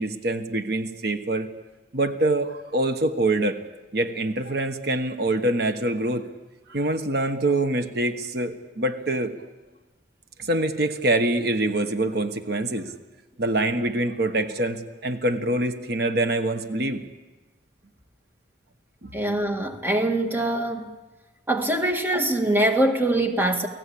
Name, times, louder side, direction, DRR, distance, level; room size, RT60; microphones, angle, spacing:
voice 1, 0.0-1.5 1.9-3.6 3.9-6.3 6.7-9.3 10.4-12.9 13.4-17.0 19.0-19.1, right 2 dB, 55° right, 1.3 m, -25 dB
voice 2, 19.1-20.9 21.5-23.7, right 1 dB, 10° right, 1.7 m, -23 dB
29.0 x 18.5 x 8.6 m
head